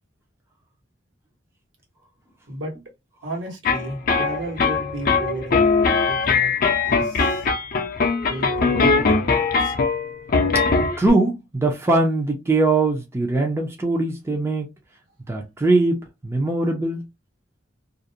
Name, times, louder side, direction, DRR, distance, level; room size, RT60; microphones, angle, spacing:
voice 1, 3.2-5.7 6.0-7.5 8.2-9.7, right 1 dB, 70° right, 1.1 m, -34 dB
sound 1, 3.6-11.1, left 4 dB, 45° left, 0.5 m, -21 dB
voice 2, 11.0-14.7 15.3-17.0, right 2 dB, 15° right, 0.4 m, -21 dB
2.5 x 2.1 x 2.7 m
head